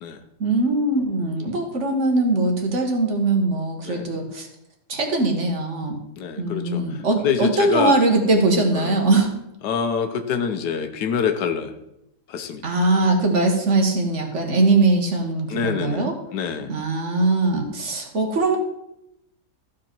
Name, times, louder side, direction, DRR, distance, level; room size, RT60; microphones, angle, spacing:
voice 1, 0.4-4.5 4.9-6.0 6.4-9.3 12.6-16.1 16.7-18.6, right 2 dB, 50° right, 3 dB, 1.5 m, -21 dB
voice 2, 3.8-4.2 6.2-8.0 8.7-9.0 9.6-11.7 12.3-12.8 15.5-16.7, left 7 dB, 85° left, 8 dB, 1.4 m, -26 dB
14.0 x 5.1 x 4.4 m, 0.84 s
omnidirectional pair, 1.7 m